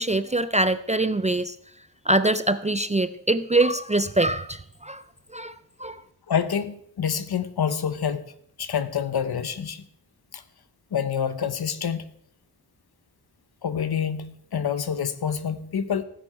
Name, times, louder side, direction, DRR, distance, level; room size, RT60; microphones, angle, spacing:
voice 1, 0.0-1.6 2.1-5.0 5.3-5.5 5.8-6.0, right 2 dB, 20° right, 0.4 m, -23 dB
voice 2, 6.3-8.2 8.6-9.8 10.3-10.4 10.9-12.1 13.6-16.0, left 7 dB, 65° left, 1.0 m, -27 dB
16.0 x 9.9 x 4.4 m
wide cardioid pair, 140°, 40 cm